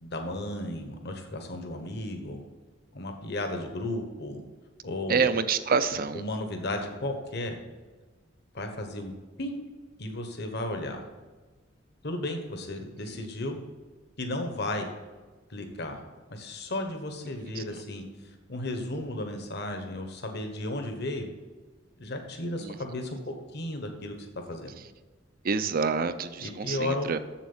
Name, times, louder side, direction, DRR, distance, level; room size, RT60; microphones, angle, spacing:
voice 1, 0.0-2.4 2.9-4.4 4.8-5.4 6.1-7.6 8.5-9.1 9.4-9.6 10.0-11.0 12.0-13.6 14.2-14.9 15.5-16.0 16.3-18.0 18.5-21.3 22.0-23.2 23.5-24.2 24.5-24.7 26.4-27.2, left 1 dB, 60° left, 4 dB, 1.3 m, -34 dB
voice 2, 5.1-6.2 13.1-13.3 17.6-17.8 22.6-22.8 25.4-27.2, right 5 dB, 50° right, 11 dB, 0.6 m, -27 dB
7.5 x 7.4 x 7.3 m, 1.3 s
head